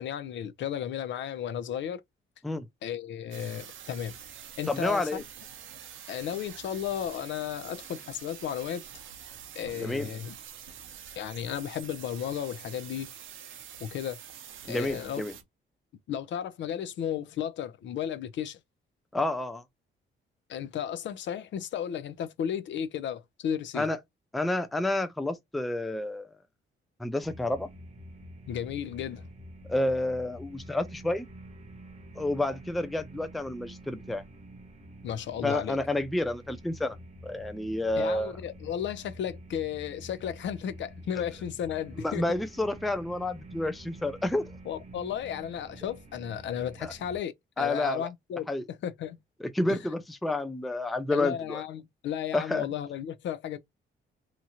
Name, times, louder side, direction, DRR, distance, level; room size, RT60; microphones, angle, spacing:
voice 1, 0.0-2.0 2.8-4.1 4.6-5.2 6.1-8.8 9.6-10.3 11.2-13.1 13.8-14.2 14.7-15.2 16.1-18.6 20.5-23.9 28.5-29.3 35.0-35.8 38.0-42.4 44.7-48.5 48.8-49.2 49.7-49.8 51.1-53.6, left 9 dB, 65° left, 0.5 m, -34 dB
sound 1, 3.3-15.4, right 9 dB, 75° right, 0.7 m, -46 dB
voice 2, 4.7-5.2 9.7-10.1 14.7-15.3 19.1-19.6 23.7-24.0 24.3-26.3 27.0-27.7 29.7-31.3 32.2-34.2 35.4-37.0 37.2-38.3 42.0-44.5 46.8-46.9 47.6-48.1 48.5-48.6 49.4-51.6 52.3-52.7, left 2 dB, ahead, 0.3 m, -29 dB
sound 2, 27.2-47.2, equal, 35° right, 0.8 m, -47 dB
2.9 x 2.4 x 2.7 m
cardioid pair, 145°, 21 cm